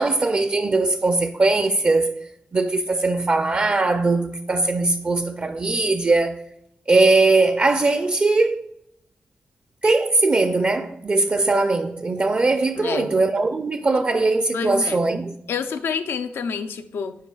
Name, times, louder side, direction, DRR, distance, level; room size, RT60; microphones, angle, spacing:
voice 1, 0.0-6.4 6.9-8.7 9.8-15.3, right 3 dB, 40° right, 0.5 m, -20 dB
voice 2, 12.8-13.1 14.5-15.0 15.5-17.1, left 6 dB, 85° left, 0.5 m, -28 dB
10.0 x 4.7 x 2.3 m
cardioid pair, 60°, 4 cm